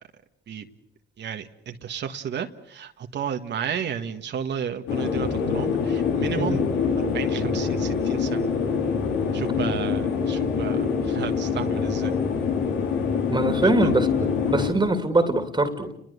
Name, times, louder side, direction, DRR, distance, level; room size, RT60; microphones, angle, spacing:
voice 1, 1.2-6.7 7.0-8.5 9.3-12.2 13.6-13.9 14.6-14.7, right 8 dB, 60° right, 6 dB, 1.6 m, -33 dB
sound 1, 4.9-14.7, left 6 dB, 85° left, 4.2 m, -25 dB
voice 2, 13.3-14.1 14.5-15.9, right 2 dB, 20° right, 8 dB, 2.5 m, -22 dB
30.0 x 20.5 x 8.2 m, 0.76 s
cardioid pair, 90°, 20 cm